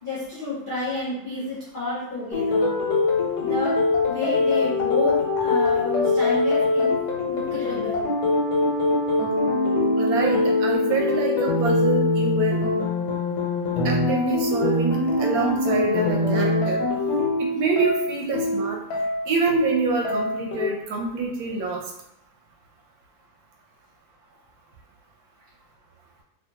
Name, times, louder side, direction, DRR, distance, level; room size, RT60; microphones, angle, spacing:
voice 1, 0.0-2.7 3.4-3.8 4.1-6.9 7.2-8.1, left 2 dB, 60° left, -8 dB, 0.5 m, -30 dB
sound 1, 2.3-20.6, left 2 dB, 90° left, 1.2 m, -23 dB
voice 2, 10.0-12.6 13.8-16.8 17.4-18.8 19.3-21.8, right 4 dB, 75° right, 0 dB, 1.0 m, -26 dB
2.8 x 2.2 x 2.8 m, 0.79 s
omnidirectional pair, 1.7 m